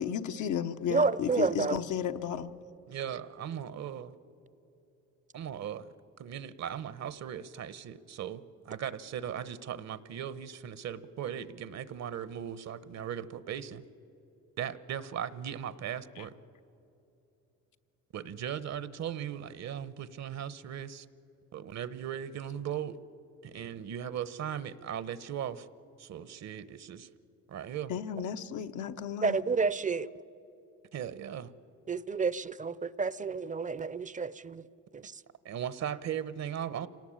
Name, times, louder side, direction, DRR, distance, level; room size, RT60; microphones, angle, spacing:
voice 1, 0.0-2.5 16.2-16.3 27.9-29.4, left 8 dB, 75° left, 7 dB, 1.0 m, -33 dB
voice 2, 0.9-1.8 29.2-30.1 31.9-34.6 34.9-35.2, right 4 dB, 25° right, 18 dB, 0.6 m, -30 dB
voice 3, 2.9-4.2 5.3-5.9 6.2-13.8 14.6-16.3 18.1-21.1 21.5-23.0 23.4-25.7 26.0-27.1 27.5-27.9 30.9-31.5 35.4-36.9, right 9 dB, 60° right, 16 dB, 1.0 m, -38 dB
26.5 x 18.0 x 8.8 m, 2.9 s
cardioid pair, 90°, 30 cm